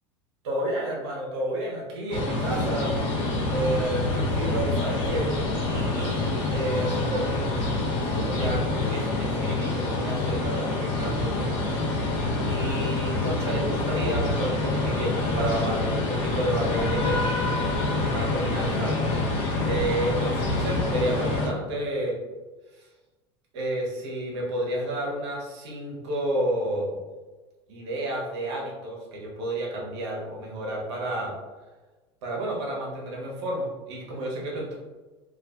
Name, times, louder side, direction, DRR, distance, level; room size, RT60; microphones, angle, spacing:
voice 1, 0.4-2.9 3.5-5.3 5.7-7.4 8.0-11.5 12.5-17.3 17.9-19.0 19.6-22.1 22.7-22.9 23.5-26.9 27.7-31.3 32.2-34.7, right 1 dB, 75° right, -3 dB, 0.9 m, -30 dB
sound 1, 2.1-21.5, left 2 dB, 60° left, 0.8 m, -26 dB
2.5 x 2.4 x 2.3 m, 1.2 s
hypercardioid pair, 100°, 14 cm